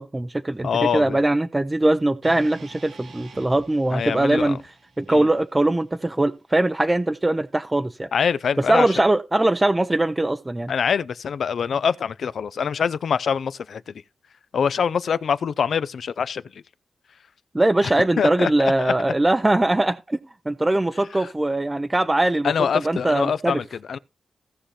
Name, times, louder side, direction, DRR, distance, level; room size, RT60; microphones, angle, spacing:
voice 1, 0.0-4.6 5.0-8.1 8.7-10.7 17.5-20.2 20.5-22.5 22.8-23.6, right 1 dB, 15° right, 0.5 m, -21 dB
voice 2, 0.6-1.2 3.9-4.6 5.1-5.3 8.1-8.9 10.7-13.9 14.5-16.6 17.8-17.9 18.2-18.9 21.2-21.3 22.4-24.0, left 7 dB, 75° left, 0.5 m, -24 dB
sound 1, 2.2-6.4, right 3 dB, 85° right, 1.8 m, -47 dB
16.5 x 5.7 x 3.2 m
wide cardioid pair, 100°, 0 cm